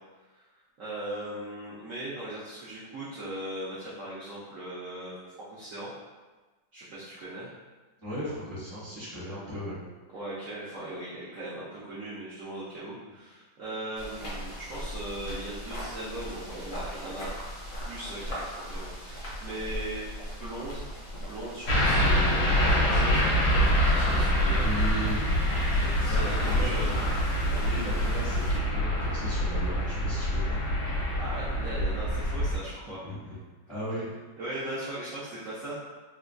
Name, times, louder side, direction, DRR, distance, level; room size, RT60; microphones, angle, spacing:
voice 1, 0.8-5.2 5.5-5.9 6.7-7.5 10.1-17.3 17.8-20.8 21.2-24.9 25.7-27.0 31.2-33.0 34.0-34.1 34.4-35.8, right 1 dB, 75° right, -9 dB, 0.7 m, -39 dB
voice 2, 8.0-9.8 24.5-25.2 25.7-27.0 27.6-30.6 32.8-33.4 33.7-34.1, equal, 30° left, -12 dB, 0.6 m, -36 dB
sound 1, 13.9-28.6, equal, 60° left, 0.9 m, -38 dB
sound 2, 21.7-32.6, equal, 75° left, 1.3 m, -25 dB
3.3 x 2.2 x 2.4 m, 1.2 s
omnidirectional pair, 2.1 m